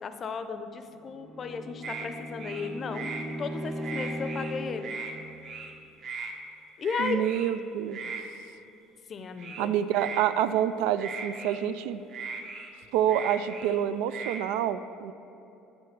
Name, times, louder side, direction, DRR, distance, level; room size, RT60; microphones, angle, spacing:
voice 1, 0.0-3.1 3.4-4.9 6.8-7.3 9.1-9.7, left 5 dB, 40° left, 9 dB, 0.6 m, -35 dB
Bowed string instrument, 1.1-5.0, equal, 35° right, 1.4 m, -37 dB
sound 1, 1.8-2.1 2.4-3.2 3.6-4.5 4.8-5.1 5.4-5.7 6.0-6.3 6.8-7.5 7.9-8.2 9.4-10.3 11.0-11.6 12.1-13.8 14.1-14.4, right 5 dB, 55° right, 1.0 m, -38 dB
voice 2, 7.0-8.1 9.6-12.0 12.9-15.1, right 10 dB, 80° right, 13 dB, 0.3 m, -27 dB
8.9 x 3.9 x 6.6 m, 3.0 s
supercardioid pair, 100°, 0 cm